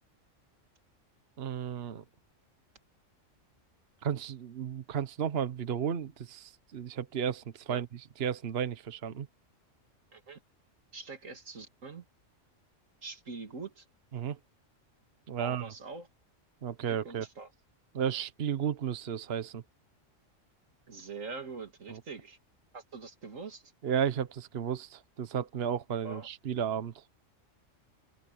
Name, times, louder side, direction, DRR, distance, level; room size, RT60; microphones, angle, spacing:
voice 1, 1.4-2.0 4.0-9.3 14.1-14.4 15.3-15.7 16.6-17.3 17.9-19.6 21.9-22.0 23.8-27.0, right 8 dB, 55° right, 1.1 m, -33 dB
voice 2, 10.9-12.1 13.0-13.8 15.4-16.1 16.9-17.5 20.9-22.4 22.7-23.6 26.0-26.3, right 4 dB, 90° right, 2.7 m, -43 dB
open air
omnidirectional pair, 1.3 m